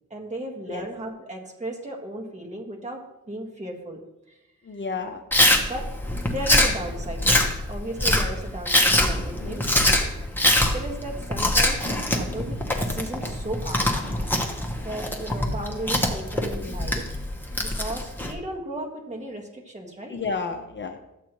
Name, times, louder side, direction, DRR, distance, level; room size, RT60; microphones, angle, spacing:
voice 1, 0.1-3.0 3.3-4.0 5.6-5.8 6.3-10.1 10.7-13.9 14.8-17.1 17.6-20.1, right 1 dB, 20° right, 0 dB, 1.6 m, -35 dB
voice 2, 4.6-5.2 9.4-10.0 20.1-21.0, left 4 dB, 40° left, 5 dB, 0.6 m, -32 dB
Chewing mastication, 5.3-18.3, left 1 dB, 5° left, 1.0 m, -23 dB
13.0 x 8.3 x 3.0 m, 0.92 s
wide cardioid pair, 165°, 31 cm